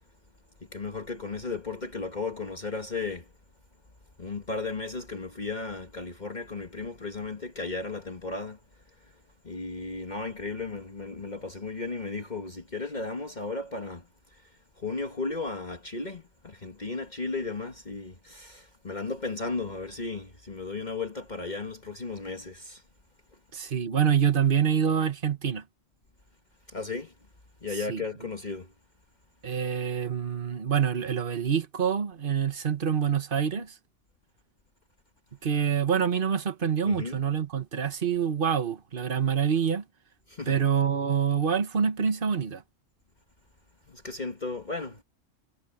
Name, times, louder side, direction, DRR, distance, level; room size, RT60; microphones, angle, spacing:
voice 1, 0.6-3.3 4.2-8.6 9.4-14.1 14.3-14.4 14.8-22.8 26.7-27.1 27.6-28.7 36.9-37.2 40.3-40.6 43.9-45.0, left 3 dB, 35° left, 1.8 m, -35 dB
voice 2, 23.5-25.6 27.9-28.0 29.4-33.7 35.4-39.8 40.5-42.6, right 7 dB, 45° right, 1.5 m, -26 dB
omnidirectional pair, 1.3 m